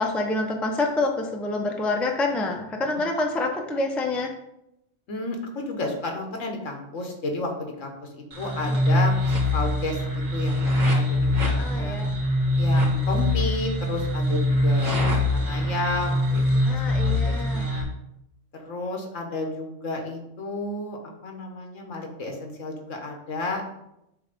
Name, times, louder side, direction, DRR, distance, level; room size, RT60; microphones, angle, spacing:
voice 1, 0.0-4.3 8.7-9.0 11.4-12.2 16.7-17.7, left 2 dB, ahead, 2 dB, 0.5 m, -27 dB
voice 2, 5.1-7.9 8.4-10.0 10.3-12.0 12.6-16.6 17.0-17.9 18.5-23.7, left 2 dB, 75° left, 2 dB, 1.6 m, -32 dB
sound 1, 8.3-17.8, left 1 dB, 80° right, 2.3 m, -23 dB
7.7 x 3.4 x 5.3 m, 0.84 s
omnidirectional pair, 1.3 m